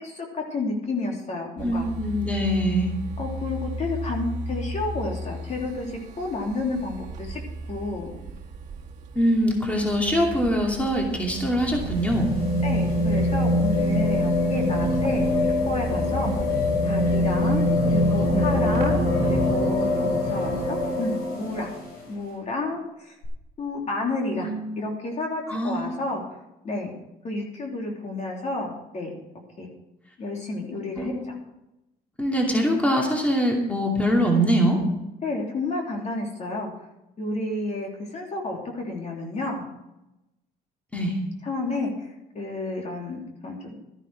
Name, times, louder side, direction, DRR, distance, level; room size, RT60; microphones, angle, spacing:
voice 1, 0.0-1.9 3.2-7.4 7.7-8.2 12.6-16.5 16.8-21.7 22.1-23.2 23.6-26.2 26.6-26.9 27.2-29.1 29.6-29.7 30.2-31.4 35.2-36.7 37.2-39.7 41.4-42.1 42.3-43.7, left 2 dB, 40° left, 0 dB, 2.9 m, -31 dB
voice 2, 1.6-2.9 9.1-12.3 24.3-24.7 25.5-26.0 31.0-31.4 32.2-34.8 40.9-41.2, equal, 10° left, 0 dB, 2.5 m, -23 dB
sound 1, 1.6-19.6, right 2 dB, 45° right, 1.6 m, -35 dB
sound 2, 11.1-22.0 23.2-23.3, left 1 dB, 65° left, 5.6 m, -24 dB
13.0 x 11.0 x 4.7 m, 0.92 s
cardioid pair, 110°, 17 cm